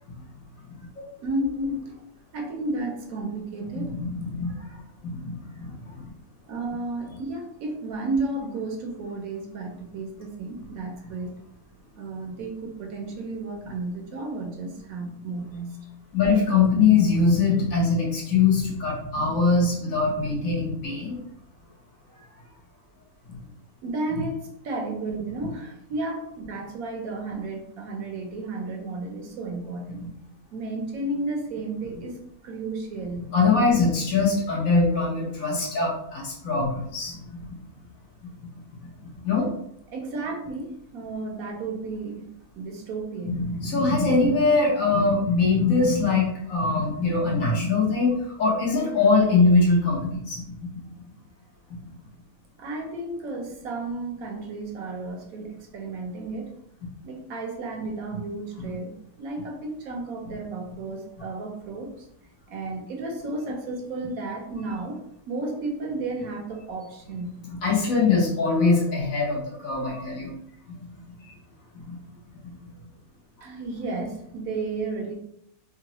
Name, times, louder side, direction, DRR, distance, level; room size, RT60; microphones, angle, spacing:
voice 1, 1.2-1.9 2.3-4.0 6.5-11.4 11.9-15.8 23.8-30.1 30.5-33.3 39.9-42.2 42.6-43.5 52.6-56.5 57.0-62.1 62.5-67.4 73.4-75.1, right 2 dB, 75° right, 2 dB, 1.1 m, -33 dB
voice 2, 3.7-6.0 11.0-11.1 16.1-21.2 23.3-23.4 30.0-30.1 33.3-37.5 38.5-39.5 43.3-50.8 58.6-58.7 67.4-70.3 70.8-70.9 71.7-72.0 72.4-72.7, left 4 dB, 65° left, -4 dB, 1.4 m, -23 dB
3.8 x 2.0 x 2.9 m, 0.73 s
omnidirectional pair, 1.6 m